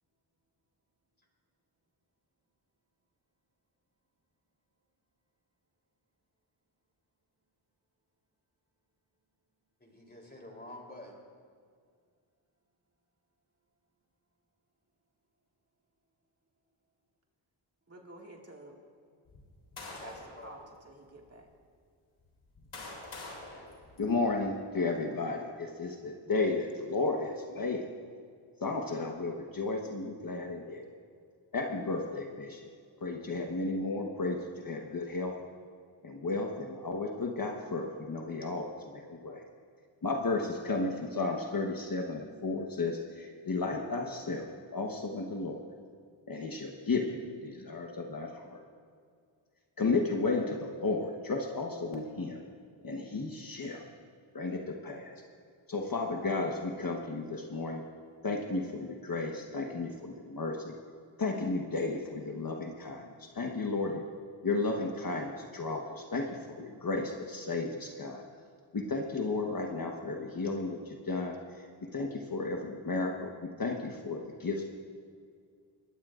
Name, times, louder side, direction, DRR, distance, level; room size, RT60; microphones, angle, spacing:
voice 1, 9.8-11.2 20.0-20.7 25.1-25.5 33.3-33.4, left 1 dB, 20° left, 0 dB, 3.3 m, -49 dB
voice 2, 17.9-18.8 20.0-20.6 20.8-21.5, right 1 dB, 30° right, -1 dB, 2.0 m, -50 dB
sound 1, 19.3-20.4 21.2-21.3 22.2-24.5, left 2 dB, 80° left, 3.5 m, -46 dB
voice 3, 24.0-27.9 28.6-30.8 31.5-32.6 33.0-35.3 36.0-39.4 40.0-45.6 46.3-48.6 49.8-52.4 52.8-53.8 54.3-55.2 55.7-57.8 58.2-60.7 61.2-64.0 64.4-68.2 68.7-74.6, left 3 dB, 45° left, 1 dB, 1.2 m, -33 dB
22.0 x 17.0 x 2.5 m, 2.1 s
wide cardioid pair, 80°, 48 cm